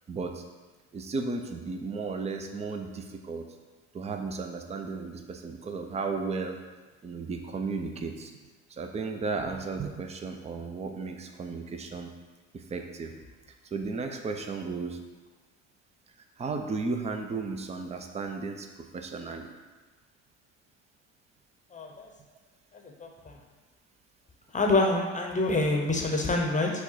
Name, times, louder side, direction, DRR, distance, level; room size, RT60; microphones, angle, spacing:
voice 1, 0.1-0.4 0.9-3.4 3.9-6.6 7.0-8.3 8.8-12.1 12.5-13.1 13.7-15.0 16.4-19.5, right 4 dB, 20° right, 4 dB, 0.5 m, -34 dB
voice 2, 21.7-22.1 22.7-23.4 24.5-26.7, left 2 dB, 20° left, 1 dB, 0.8 m, -27 dB
5.9 x 2.2 x 4.0 m, 1.3 s
hypercardioid pair, 65°, 36 cm